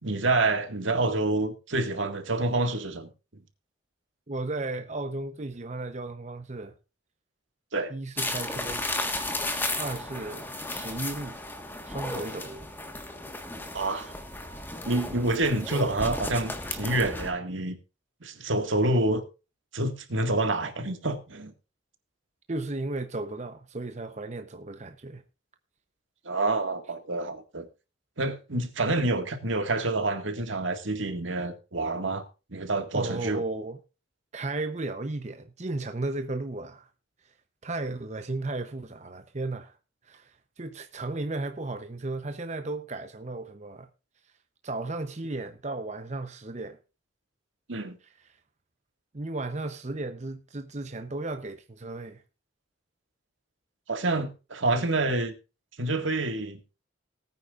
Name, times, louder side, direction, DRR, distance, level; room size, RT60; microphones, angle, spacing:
voice 1, 0.0-3.1 7.7-7.9 13.7-14.1 14.8-17.8 18.2-19.2 19.7-21.5 26.3-27.7 28.2-32.2 32.5-33.4 47.7-48.0 53.9-55.3 55.8-56.6, right 2 dB, 75° right, 1.9 m, -27 dB
voice 2, 4.3-6.7 7.9-8.8 9.7-11.4 11.8-12.7 22.5-25.2 32.9-33.8 34.3-36.9 37.2-37.3 37.6-39.8 40.0-43.9 44.6-46.8 48.0-48.4 49.1-52.2, right 2 dB, 35° right, 0.8 m, -35 dB
sound 1, 8.2-17.3, left 2 dB, 10° left, 1.5 m, -34 dB
19.0 x 9.3 x 2.5 m
head